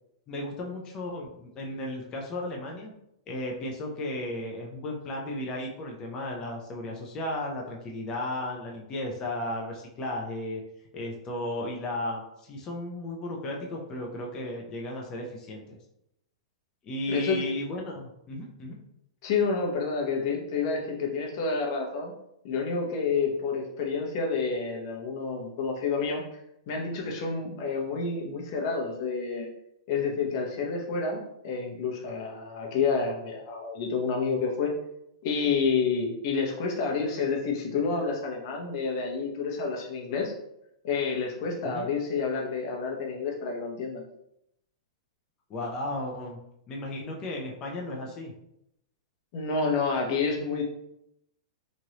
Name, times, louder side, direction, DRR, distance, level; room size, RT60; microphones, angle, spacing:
voice 1, 0.3-2.9 3.3-10.6 10.9-15.8 16.8-18.7 41.6-41.9 45.5-46.4 46.7-48.3, left 1 dB, 25° left, -1 dB, 0.5 m, -34 dB
voice 2, 17.1-17.5 19.2-22.1 22.4-26.2 26.7-29.5 29.9-34.7 35.2-40.3 40.8-44.0 49.3-50.6, left 5 dB, 50° left, 0 dB, 0.8 m, -29 dB
3.1 x 2.5 x 2.8 m, 0.80 s
hypercardioid pair, 145°, 3 cm